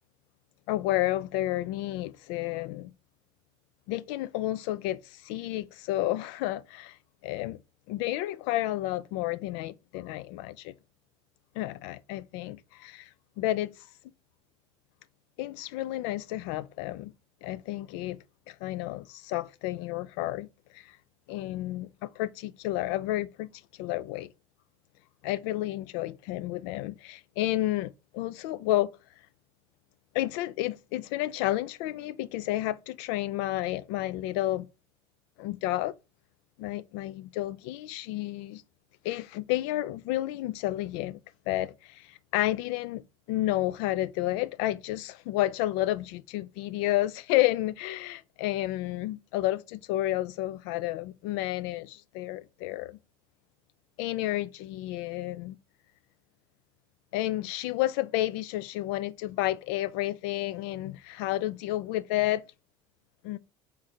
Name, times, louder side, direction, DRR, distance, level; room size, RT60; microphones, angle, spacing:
voice 1, 0.7-2.9 3.9-7.0 7.2-7.6 7.9-10.8 11.6-13.1 13.4-13.9 15.4-17.1 17.4-18.2 18.5-20.5 20.7-21.0 21.3-23.5 23.8-24.3 25.2-28.9 30.1-34.7 35.4-35.9 36.6-38.6 39.0-41.2 41.5-43.0 43.3-53.0 54.0-55.6 57.1-62.4 63.2-63.4, left 15 dB, 85° left, 0.4 m, -31 dB
3.7 x 3.1 x 4.1 m
cardioid pair, 130°, 13 cm